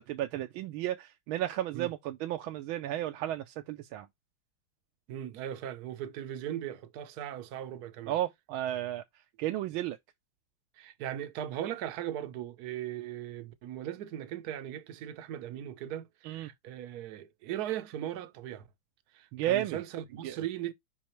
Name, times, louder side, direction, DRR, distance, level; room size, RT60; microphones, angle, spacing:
voice 1, 0.0-4.1 8.1-9.0 9.4-10.0 16.2-16.5 19.3-19.8 20.2-20.4, right 13 dB, 80° right, 1.4 m, -33 dB
voice 2, 5.1-8.1 10.8-18.7 19.1-20.7, right 11 dB, 60° right, 1.1 m, -38 dB
5.8 x 5.5 x 3.0 m
omnidirectional pair, 2.3 m